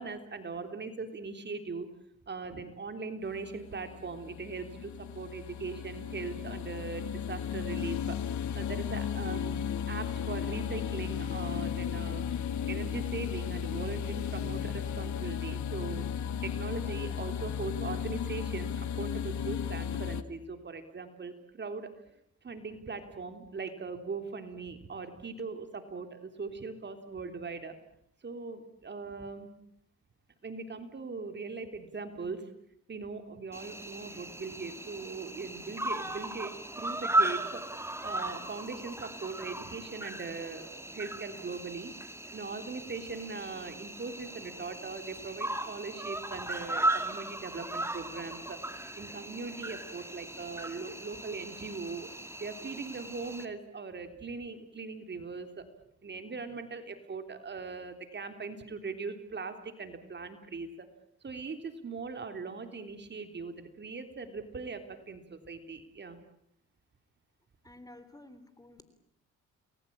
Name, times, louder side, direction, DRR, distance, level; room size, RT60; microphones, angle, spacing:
voice 1, 0.0-1.9 2.3-8.2 8.5-9.6 9.9-12.3 12.7-18.7 19.0-21.9 22.4-27.8 28.2-29.5 30.4-32.5 32.9-41.9 42.3-52.1 52.4-55.7 56.0-60.9 61.2-66.2, right 4 dB, 35° right, 7 dB, 3.6 m, -40 dB
sound 1, 3.2-20.2, left 8 dB, 70° left, 1.8 m, -35 dB
Cricket, 33.5-53.5, right 1 dB, 10° right, 2.4 m, -36 dB
voice 2, 67.6-68.8, left 1 dB, 10° left, 12 dB, 3.5 m, -52 dB
30.0 x 21.0 x 8.8 m, 0.75 s
cardioid pair, 90°, 30 cm